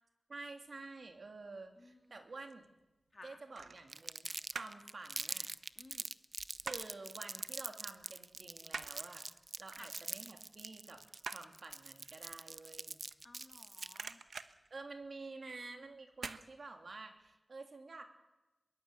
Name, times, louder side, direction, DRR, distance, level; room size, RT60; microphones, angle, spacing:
voice 1, 0.3-2.7 3.2-4.3 4.5-5.5 6.6-9.3 9.6-11.0 11.3-13.0 14.7-18.0, right 3 dB, 55° right, 5 dB, 3.1 m, -50 dB
voice 2, 1.8-2.2 3.1-3.4 5.8-6.1 9.7-9.9 13.2-14.2, left 2 dB, 35° left, 6 dB, 2.1 m, -57 dB
sound 1, 2.0-2.7 3.5-4.9 5.2-7.1 7.4-7.6 7.9-13.6 13.9-15.5 16.1-16.5 16.9-17.0, right 5 dB, 75° right, 1.2 m, -48 dB
Crumpling crinkling, 3.9-14.1, right 3 dB, 40° right, 0.7 m, -44 dB
22.5 x 20.5 x 8.4 m, 1.0 s
wide cardioid pair, 80°, 0 cm